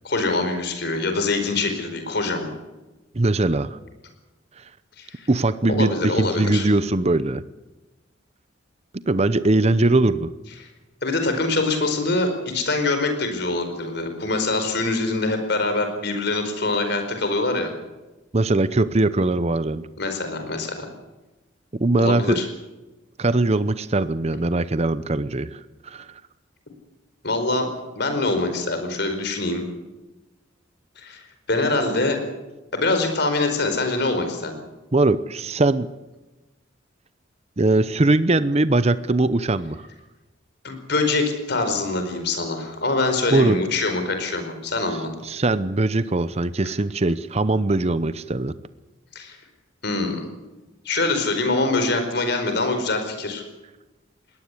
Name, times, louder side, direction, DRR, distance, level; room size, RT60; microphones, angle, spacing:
voice 1, 0.0-2.5 5.0-5.3 5.7-6.7 10.6-10.7 11.0-17.7 20.0-20.9 22.0-22.4 27.2-27.7 28.0-29.6 31.0-32.2 32.7-34.6 40.6-45.1 49.1-49.4 49.8-50.2 50.8-53.4, left 2 dB, 55° left, 6 dB, 4.7 m, -24 dB
voice 2, 3.1-3.8 5.3-7.4 9.1-10.3 18.3-19.8 21.8-22.4 23.2-26.1 34.9-35.9 37.6-39.8 43.3-43.6 45.2-48.5, right 2 dB, 30° right, 14 dB, 0.7 m, -21 dB
21.5 x 18.0 x 8.4 m, 1.1 s
head